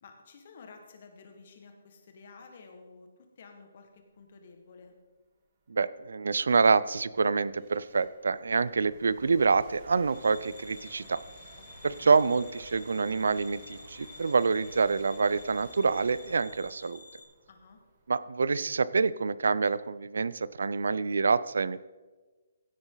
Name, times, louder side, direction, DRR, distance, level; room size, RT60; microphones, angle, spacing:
voice 1, 0.0-4.9 11.6-12.1 17.5-17.8, left 4 dB, 35° left, 4 dB, 1.6 m, -52 dB
sound 1, 5.2-5.3 5.9-20.6, right 3 dB, 25° right, 1.3 m, -54 dB
voice 2, 5.7-11.2 11.8-17.0 18.1-21.8, right 4 dB, 80° right, 18 dB, 0.4 m, -26 dB
sound 2, 10.1-17.2, left 4 dB, 60° left, 2.2 m, -51 dB
16.0 x 8.0 x 4.0 m, 1.3 s
hypercardioid pair, 175°, 0 cm